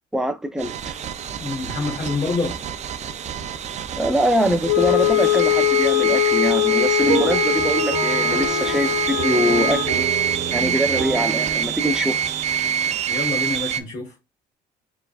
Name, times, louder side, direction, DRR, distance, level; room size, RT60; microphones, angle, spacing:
voice 1, 0.1-1.0 4.0-10.0 10.5-12.2, equal, 5° right, 0.7 m, -23 dB
sound 1, 0.6-13.8, right 8 dB, 45° right, 0.5 m, -26 dB
voice 2, 1.4-2.7 13.1-14.1, left 3 dB, 45° left, 1.5 m, -27 dB
Wind instrument woodwind instrument, 4.6-9.9, left 15 dB, 80° left, 0.5 m, -21 dB
sound 2, 7.0-12.9, right 6 dB, 65° right, 1.0 m, -30 dB
4.7 x 3.6 x 2.4 m
cardioid pair, 110°, 17 cm